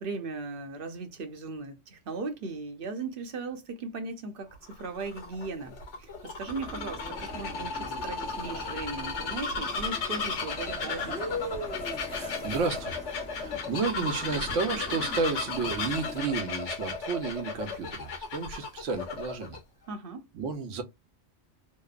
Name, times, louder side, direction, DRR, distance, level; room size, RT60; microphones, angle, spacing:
voice 1, 0.0-11.2 19.9-20.3, right 3 dB, 55° right, 0.8 m, -38 dB
Bird vocalization bird call bird song, 4.5-19.6, left 4 dB, 75° left, 1.1 m, -35 dB
sound 1, 6.5-16.2, left 1 dB, 5° left, 0.6 m, -41 dB
voice 2, 12.1-13.0 13.3-19.6 20.3-20.8, right 4 dB, 85° right, 1.1 m, -32 dB
2.8 x 2.0 x 2.3 m
omnidirectional pair, 1.2 m